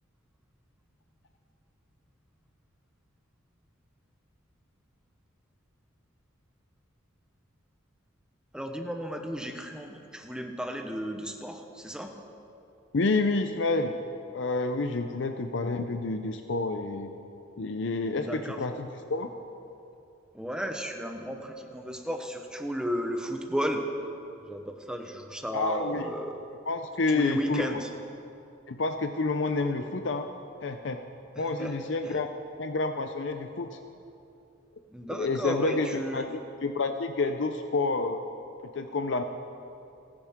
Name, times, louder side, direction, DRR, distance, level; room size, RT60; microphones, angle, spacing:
voice 1, 8.5-12.1 18.2-18.6 20.3-23.9 24.5-26.4 27.1-27.9 31.4-31.7 32.1-32.2 34.9-36.3, equal, 5° right, 4 dB, 1.0 m, -34 dB
voice 2, 12.9-13.9 14.3-17.1 17.6-19.3 25.5-26.1 26.7-27.8 28.7-30.3 30.6-31.0 31.4-32.3 32.6-33.8 35.1-36.3 36.6-38.2 38.7-39.2, left 3 dB, 65° left, 7 dB, 0.6 m, -29 dB
29.5 x 10.0 x 3.7 m, 2.7 s
head